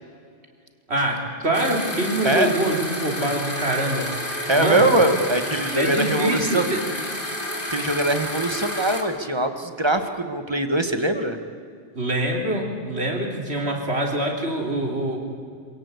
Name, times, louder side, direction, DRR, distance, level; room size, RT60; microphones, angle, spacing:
voice 1, 0.9-4.2 4.6-4.9 5.8-6.8 11.9-15.2, right 1 dB, 75° right, 1 dB, 3.9 m, -25 dB
sound 1, 1.5-9.0, left 1 dB, 55° left, 3.0 m, -30 dB
voice 2, 4.5-6.6 7.7-11.4, right 1 dB, 25° right, 7 dB, 1.6 m, -22 dB
26.5 x 17.5 x 8.4 m, 2.2 s
omnidirectional pair, 1.1 m